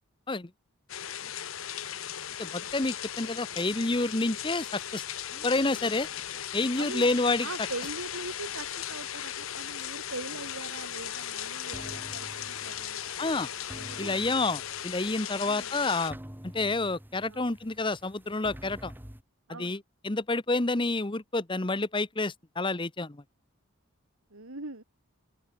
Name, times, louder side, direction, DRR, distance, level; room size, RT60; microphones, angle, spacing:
sound 1, 0.9-16.1, left 10 dB, 80° left, 1.5 m, -37 dB
voice 1, 2.4-5.0 5.4-6.1 6.5-7.5 13.2-13.5 14.0-16.2 16.4-18.9 19.5-23.2, left 2 dB, 25° left, 0.9 m, -29 dB
sound 2, 2.7-19.2, equal, 10° right, 2.9 m, -51 dB
voice 2, 6.8-13.0 13.7-14.3 15.3-15.8 17.2-17.5 19.5-19.8 24.3-24.8, right 3 dB, 85° right, 2.7 m, -42 dB
open air
head